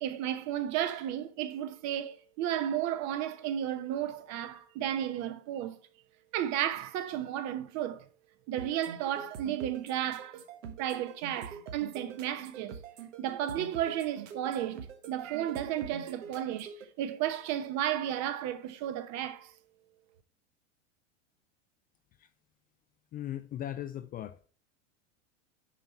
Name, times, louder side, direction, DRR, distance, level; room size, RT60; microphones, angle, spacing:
voice 1, 0.0-5.8 6.3-8.1 8.5-10.4 10.8-12.8 13.2-19.5, right 11 dB, 45° right, 1.0 m, -33 dB
sound 1, 8.6-16.8, right 7 dB, 85° right, 1.5 m, -45 dB
voice 2, 23.1-24.5, left 12 dB, 25° left, 0.4 m, -38 dB
9.8 x 4.3 x 4.4 m
supercardioid pair, 120°, 37 cm